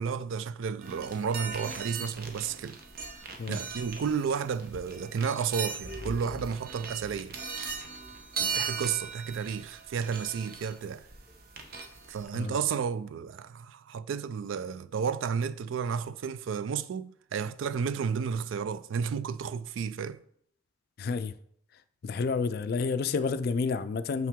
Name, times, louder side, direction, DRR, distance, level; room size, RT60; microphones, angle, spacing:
voice 1, 0.0-2.8 3.5-7.4 8.4-11.1 12.1-20.2, right 6 dB, 85° right, 0.3 m, -32 dB
sound 1, 0.8-12.3, right 5 dB, 50° right, 0.8 m, -39 dB
sound 2, 5.8-8.5 8.9-9.1 10.2-10.3 10.9-11.0 11.3-11.4, equal, 30° right, 2.3 m, -44 dB
voice 2, 21.0-21.3 22.0-24.3, left 4 dB, 50° left, 0.3 m, -30 dB
5.8 x 5.6 x 3.6 m
head